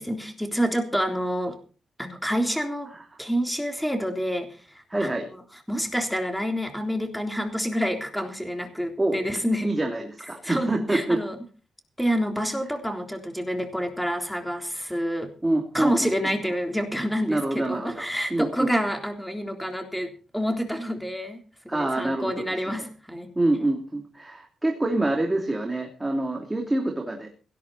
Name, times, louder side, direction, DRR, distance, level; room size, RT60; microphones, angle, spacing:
voice 1, 0.0-1.6 2.0-2.9 3.2-4.5 5.0-5.1 5.7-9.7 10.4-11.4 12.0-15.3 15.7-21.4 21.7-23.3, equal, 5° left, 4 dB, 3.6 m, -28 dB
voice 2, 4.9-5.3 9.0-9.2 9.6-11.2 15.4-16.1 17.3-18.7 21.7-22.4 22.7-22.9 23.3-27.3, right 2 dB, 15° right, 1 dB, 3.0 m, -26 dB
18.0 x 12.0 x 4.2 m, 0.37 s
cardioid pair, 100°, 0 cm